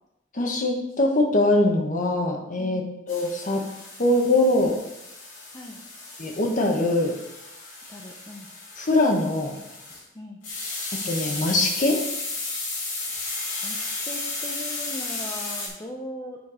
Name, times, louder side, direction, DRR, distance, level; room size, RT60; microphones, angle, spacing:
voice 1, 0.3-3.6 4.0-4.8 6.2-7.1 8.8-9.6 10.9-12.0, left 2 dB, 45° left, 2 dB, 1.2 m, -22 dB
sound 1, 3.1-10.0 10.4-15.7, left 3 dB, 85° left, 2.8 m, -34 dB
voice 2, 7.9-8.5 10.1-10.4 13.6-16.4, left 1 dB, 20° left, 0 dB, 0.7 m, -39 dB
8.4 x 4.6 x 4.9 m, 0.89 s
head